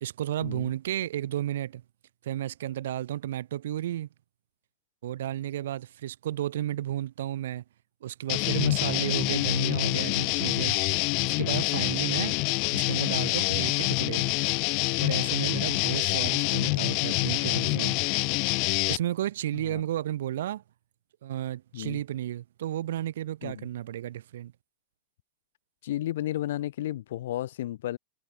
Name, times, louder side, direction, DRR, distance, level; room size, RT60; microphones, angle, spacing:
voice 1, 0.0-1.8 2.2-4.1 5.0-7.6 8.0-10.8 11.2-12.4 12.7-14.3 15.0-18.0 18.9-20.6 21.2-24.5, right 12 dB, 85° right, 1.5 m, -32 dB
sound 1, 8.3-19.0, left 33 dB, 55° left, 1.1 m, -26 dB
voice 2, 25.8-28.0, left 13 dB, 85° left, 3.1 m, -33 dB
supercardioid pair, 130°, 0 cm